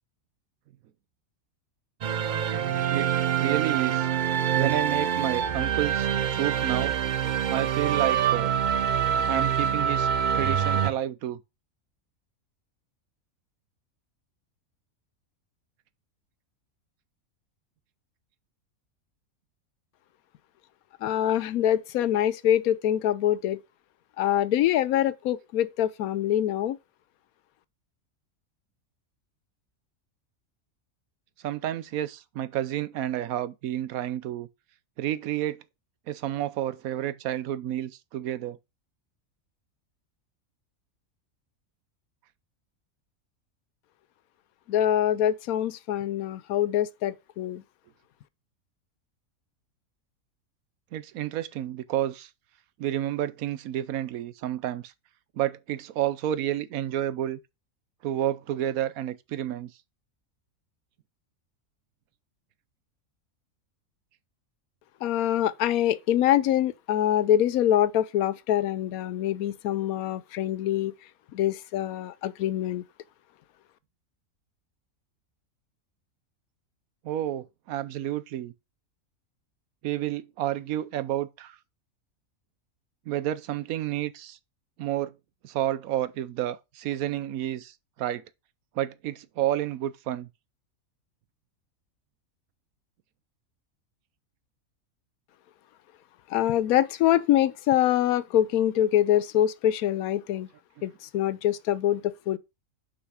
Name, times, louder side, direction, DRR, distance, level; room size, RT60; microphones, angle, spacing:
sound 1, 2.0-10.9, right 9 dB, 70° right, 0.4 m, -25 dB
voice 1, 2.9-4.1 4.5-6.9 7.5-8.5 9.3-10.1 10.3-11.4 31.4-34.5 35.0-35.6 36.1-38.6 50.9-52.3 52.8-54.9 55.4-57.4 58.0-59.7 77.0-78.5 79.8-81.6 83.1-84.4 84.8-85.1 85.4-88.2 88.8-90.3 100.8-100.9, right 12 dB, 85° right, 1.1 m, -30 dB
voice 2, 21.0-23.6 24.2-26.8 44.7-47.6 65.0-70.9 71.3-72.8 96.3-100.5 100.8-102.4, left 11 dB, 90° left, 1.1 m, -24 dB
6.0 x 5.6 x 4.8 m
omnidirectional pair, 1.5 m